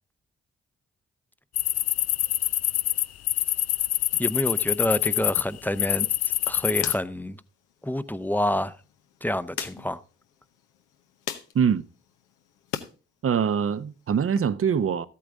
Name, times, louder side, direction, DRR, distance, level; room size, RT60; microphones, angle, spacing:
sound 1, 1.6-5.4 5.8-7.0, left 13 dB, 55° left, 0.4 m, -25 dB
voice 1, 4.2-6.1 6.5-7.4 7.8-8.7 9.2-10.0, left 1 dB, 5° left, 0.7 m, -27 dB
sound 2, 5.7-12.9 13.3-14.4, left 9 dB, 90° left, 0.9 m, -42 dB
voice 2, 11.5-11.9 13.2-15.1, right 7 dB, 45° right, 0.8 m, -23 dB
13.0 x 8.6 x 3.5 m
supercardioid pair, 45°, 30 cm